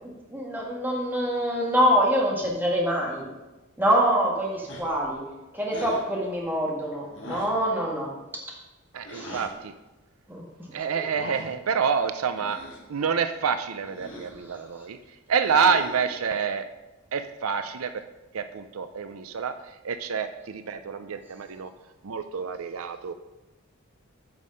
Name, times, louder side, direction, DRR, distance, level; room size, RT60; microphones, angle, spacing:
voice 1, 0.0-3.3 3.8-5.2 5.5-8.1 9.1-9.4 10.3-10.4, equal, 10° right, -3 dB, 1.9 m, -25 dB
sound 1, 4.7-5.1 5.7-6.1 7.1-7.6 9.1-9.5 11.0-11.5 12.3-12.9 13.9-14.4 15.4-16.1, left 1 dB, 60° left, 2.1 m, -40 dB
voice 2, 8.9-9.7 10.7-12.6 12.9-15.0 15.3-16.7 17.1-18.0 18.3-21.7 22.0-23.1, right 6 dB, 75° right, 10 dB, 0.5 m, -27 dB
9.5 x 5.5 x 6.4 m, 1.1 s
head